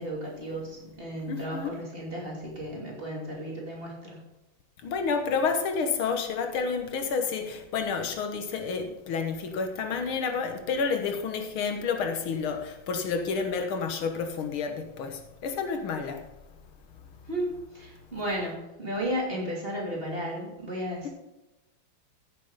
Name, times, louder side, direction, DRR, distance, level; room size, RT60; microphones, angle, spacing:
voice 1, 0.0-4.2 17.3-21.1, equal, 25° right, -3 dB, 3.0 m, -34 dB
voice 2, 1.2-1.7 4.8-16.2, left 5 dB, 85° left, 6 dB, 2.1 m, -30 dB
15.0 x 7.4 x 4.1 m, 1.0 s
omnidirectional pair, 2.2 m